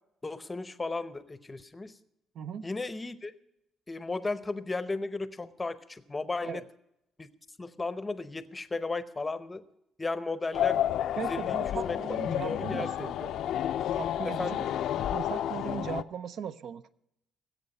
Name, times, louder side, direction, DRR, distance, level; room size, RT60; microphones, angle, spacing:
voice 1, 0.2-1.9 2.6-3.3 3.9-6.6 7.2-7.3 7.6-9.6 10.0-10.8 11.1-11.6 11.8-12.0 12.4-13.1 14.2-14.7, left 3 dB, 15° left, 13 dB, 0.7 m, -35 dB
voice 2, 2.3-2.7 6.4-6.6 11.2-13.3 13.9-14.7 15.1-16.9, right 7 dB, 60° right, 13 dB, 0.5 m, -38 dB
sound 1, 10.5-16.0, left 11 dB, 70° left, 0.5 m, -30 dB
20.5 x 8.1 x 5.3 m, 0.83 s
cardioid pair, 140°, 0 cm